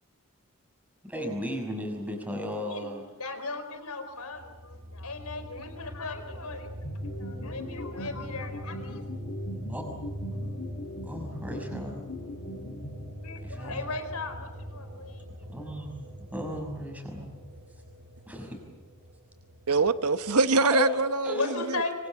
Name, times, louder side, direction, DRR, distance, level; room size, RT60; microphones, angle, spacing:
voice 1, 1.1-3.0 9.7-9.8 11.0-12.1 13.4-14.0 15.4-16.1 16.3-17.3 18.3-18.6 20.7-20.9 21.2-21.5, equal, 5° right, 6.0 m, -35 dB
voice 2, 3.2-6.9 7.2-9.0 13.2-15.2 21.3-21.9, left 3 dB, 85° left, 4.5 m, -37 dB
sound 1, 4.3-20.5, equal, 65° right, 5.1 m, -42 dB
sound 2, 6.8-13.5, left 1 dB, 50° left, 2.8 m, -40 dB
voice 3, 19.7-21.8, right 3 dB, 90° right, 1.2 m, -24 dB
25.5 x 25.5 x 7.7 m
head